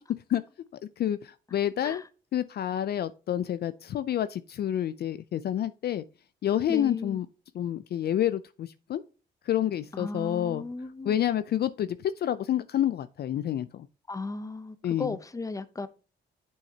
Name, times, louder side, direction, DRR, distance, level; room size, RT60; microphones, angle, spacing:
voice 1, 1.0-2.0 2.3-6.0 6.4-7.3 7.5-9.0 9.4-10.6 11.1-13.9 14.8-15.2, left 11 dB, 55° left, 0.4 m, -28 dB
voice 2, 6.7-7.2 9.9-11.2 14.1-15.9, left 3 dB, 15° left, 0.7 m, -35 dB
8.5 x 6.3 x 2.8 m
cardioid pair, 90°, 20 cm